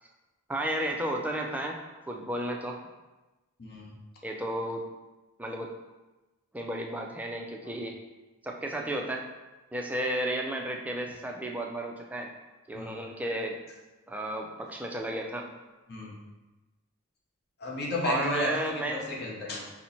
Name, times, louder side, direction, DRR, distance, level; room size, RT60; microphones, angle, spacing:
voice 1, 0.5-1.8 2.1-2.8 4.2-4.8 5.4-5.7 6.5-8.0 8.4-9.2 9.7-12.3 12.7-13.6 14.1-15.5 18.0-19.0, right 1 dB, 5° right, 1 dB, 0.3 m, -33 dB
voice 2, 3.6-3.9 12.7-13.0 15.9-16.1 17.6-18.5 18.9-19.6, left 1 dB, 50° left, -2 dB, 0.8 m, -32 dB
4.3 x 2.1 x 4.0 m, 1.1 s
head